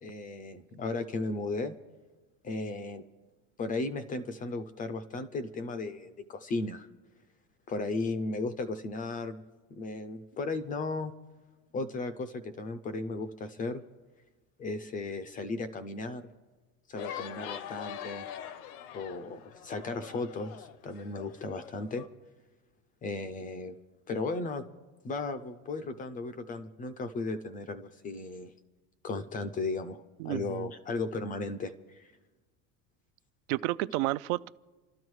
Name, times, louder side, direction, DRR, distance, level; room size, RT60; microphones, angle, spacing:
voice 1, 0.0-1.7 2.4-3.0 3.6-6.9 7.7-9.4 9.7-11.1 11.7-13.8 14.6-16.2 16.9-18.3 18.9-22.1 23.0-23.8 24.1-24.6 25.0-28.5 29.0-32.1, left 3 dB, 20° left, 11 dB, 0.4 m, -35 dB
sound 1, 17.0-22.1, left 10 dB, 85° left, 1.0 m, -43 dB
voice 2, 30.2-30.7 33.5-34.5, right 18 dB, 75° right, 16 dB, 0.6 m, -31 dB
29.5 x 12.5 x 3.1 m, 1.3 s
cardioid pair, 165°, 43 cm